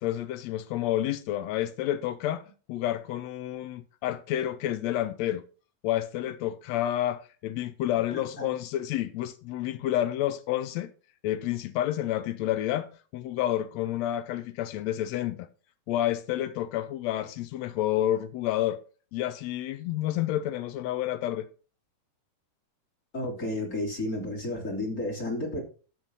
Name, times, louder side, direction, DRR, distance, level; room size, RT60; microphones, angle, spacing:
voice 1, 0.0-5.4 5.8-10.9 11.2-15.5 15.9-18.8 19.1-21.5, left 13 dB, 90° left, 1.5 m, -29 dB
voice 2, 8.1-8.5 23.1-25.6, left 1 dB, 25° left, 2.9 m, -32 dB
12.5 x 4.5 x 5.2 m
omnidirectional pair, 3.8 m